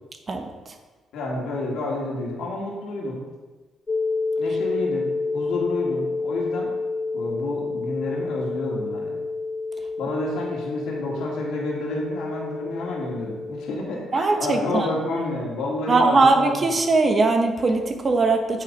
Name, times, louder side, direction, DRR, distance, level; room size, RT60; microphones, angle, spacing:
voice 1, 1.1-3.2 4.4-6.7 7.1-9.2 10.0-16.7, left 2 dB, 85° left, -3 dB, 2.1 m, -29 dB
sound 1, 3.9-13.8, left 3 dB, 30° left, 0.6 m, -29 dB
voice 2, 14.1-14.9 15.9-18.6, right 3 dB, 35° right, 4 dB, 1.3 m, -20 dB
8.4 x 6.7 x 5.4 m, 1.3 s
cardioid pair, 90°, 0 cm